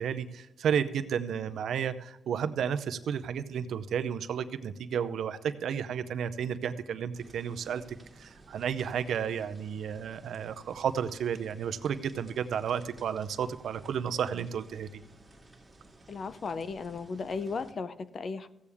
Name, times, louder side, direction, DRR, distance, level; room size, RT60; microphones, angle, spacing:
voice 1, 0.0-7.8 8.2-15.0, right 8 dB, 80° right, 11 dB, 0.6 m, -32 dB
sound 1, 7.1-17.7, right 2 dB, 15° right, 2.1 m, -55 dB
voice 2, 16.1-18.5, left 4 dB, 45° left, 14 dB, 0.5 m, -35 dB
15.5 x 8.4 x 3.5 m, 0.93 s
cardioid pair, 120°, 0 cm